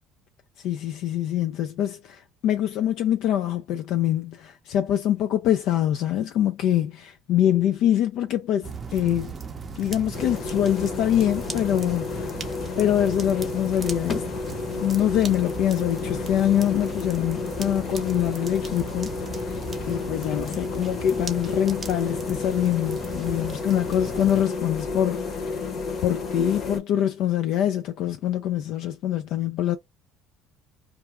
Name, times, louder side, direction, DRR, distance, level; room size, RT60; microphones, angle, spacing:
voice 1, 0.6-9.3 9.8-12.3 12.8-14.3 14.8-19.2 19.4-25.6 26.0-29.8, left 11 dB, 65° left, 0.3 m, -24 dB
sound 1, 8.6-24.4, right 5 dB, 25° right, 0.5 m, -38 dB
sound 2, 10.1-26.8, left 4 dB, 45° left, 0.9 m, -32 dB
2.3 x 2.3 x 2.8 m
cardioid pair, 115°, 0 cm